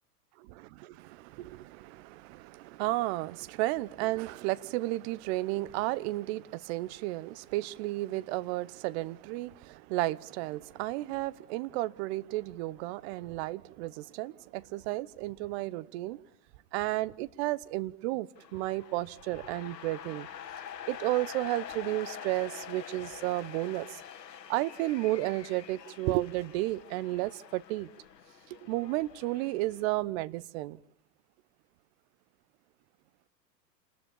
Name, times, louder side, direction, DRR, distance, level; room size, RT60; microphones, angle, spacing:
voice 1, 0.6-16.2 16.7-20.3 20.9-24.0 24.5-27.9 28.5-30.8, right 18 dB, 40° right, 1.0 m, -33 dB
sound 1, 18.3-29.9, left 9 dB, 75° left, 1.7 m, -46 dB
28.5 x 20.0 x 7.1 m
hypercardioid pair, 105°, 50 cm